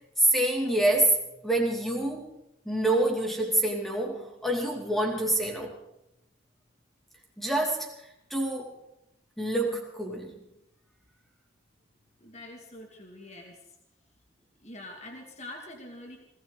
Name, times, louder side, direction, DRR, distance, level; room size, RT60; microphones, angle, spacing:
voice 1, 0.2-1.2 1.4-2.3 2.7-5.8 7.4-7.9 8.3-8.7 9.4-10.3, right 1 dB, ahead, 1 dB, 2.6 m, -26 dB
voice 2, 12.2-13.6 14.6-16.2, left 1 dB, 35° left, 1 dB, 2.3 m, -44 dB
20.0 x 18.0 x 4.0 m, 0.83 s
head